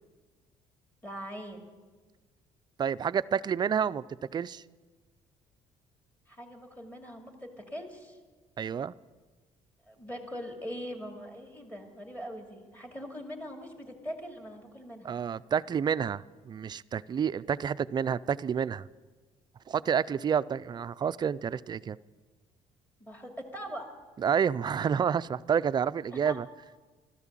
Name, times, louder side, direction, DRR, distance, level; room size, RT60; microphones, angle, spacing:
voice 1, 1.0-1.6 6.3-8.2 9.9-15.1 23.0-23.8 26.1-26.4, equal, 10° left, 3 dB, 2.5 m, -41 dB
voice 2, 2.8-4.0 4.3-4.6 8.6-8.9 15.0-18.9 19.7-22.0 24.2-26.5, right 7 dB, 35° right, 16 dB, 0.4 m, -29 dB
13.0 x 12.5 x 7.5 m, 1.4 s
cardioid pair, 95°, 13 cm